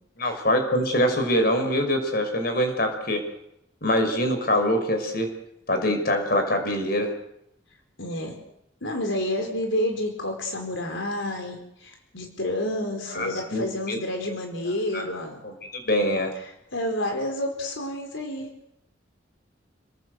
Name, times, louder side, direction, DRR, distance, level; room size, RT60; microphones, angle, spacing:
voice 1, 0.2-3.2 3.8-5.3 5.7-7.1 13.1-14.0 14.9-15.1 15.4-16.3, equal, 50° left, 6 dB, 6.0 m, -24 dB
voice 2, 8.0-8.4 8.8-15.4 16.7-18.5, left 1 dB, 85° left, 3 dB, 4.5 m, -29 dB
30.0 x 19.5 x 8.2 m, 0.80 s
head